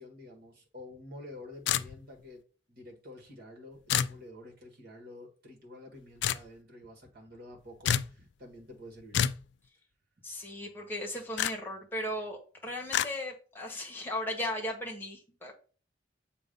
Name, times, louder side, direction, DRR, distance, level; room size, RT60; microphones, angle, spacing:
voice 1, 0.0-2.4 2.7-9.2, left 1 dB, 55° right, 0 dB, 1.6 m, -49 dB
sound 1, 1.7-2.2 3.9-4.2 6.2-6.4 7.8-8.1 9.1-9.4 11.4-11.5 12.9-13.1, left 9 dB, 65° left, 0.3 m, -28 dB
voice 2, 10.2-15.5, left 1 dB, 10° left, 0 dB, 1.3 m, -37 dB
7.0 x 2.6 x 5.2 m, 0.39 s
head